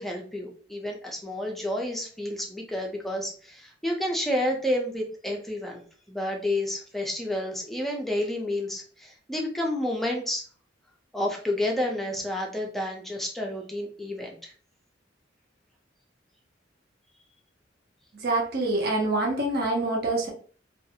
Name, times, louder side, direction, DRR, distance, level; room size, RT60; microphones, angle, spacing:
voice 1, 0.0-5.8 6.1-10.4 11.1-14.5, left 1 dB, ahead, -1 dB, 0.5 m, -30 dB
voice 2, 18.1-20.3, right 2 dB, 55° right, -1 dB, 0.6 m, -26 dB
2.4 x 2.3 x 2.7 m, 0.42 s
head